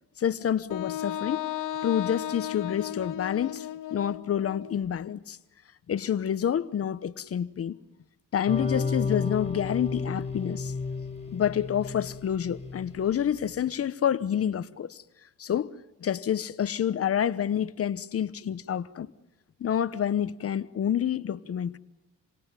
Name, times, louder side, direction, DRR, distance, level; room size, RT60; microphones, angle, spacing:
voice 1, 0.2-1.5 1.8-5.4 5.9-7.8 8.3-10.7 11.3-15.0 15.4-15.7 16.0-19.1 19.6-21.8, left 9 dB, 50° left, 1.0 m, -28 dB
Wind instrument woodwind instrument, 0.7-4.7, left 11 dB, 90° left, 2.0 m, -35 dB
sound 1, 8.5-13.3, left 4 dB, 20° left, 5.4 m, -32 dB
28.5 x 24.5 x 7.5 m
cardioid pair, 90°, 30 cm